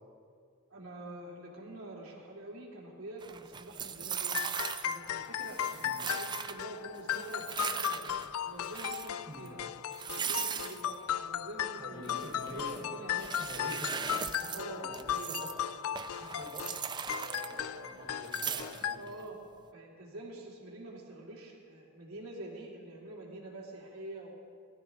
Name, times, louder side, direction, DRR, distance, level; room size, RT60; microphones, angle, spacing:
voice 1, 0.7-4.4 4.8-8.0 8.4-9.6 10.0-13.3 14.0-15.7 18.9-19.4 19.7-24.3, right 2 dB, 75° right, -3 dB, 3.0 m, -46 dB
sound 1, 3.2-5.1 5.4-6.7 7.1-8.3 8.6-9.1 9.5-9.6 9.9-10.9 12.0-12.9 13.2-14.6 14.9-15.6 16.0-17.9 18.2-19.1, right 7 dB, 20° right, 0.4 m, -39 dB
sound 2, 4.3-19.0, left 10 dB, 70° left, 0.4 m, -37 dB
voice 2, 5.8-6.2 9.2-9.5 11.8-12.9 13.4-14.1 14.4-15.6 16.2-16.8 17.1-19.0, right 1 dB, 40° right, -3 dB, 4.1 m, -46 dB
20.0 x 13.0 x 3.7 m, 2.2 s
head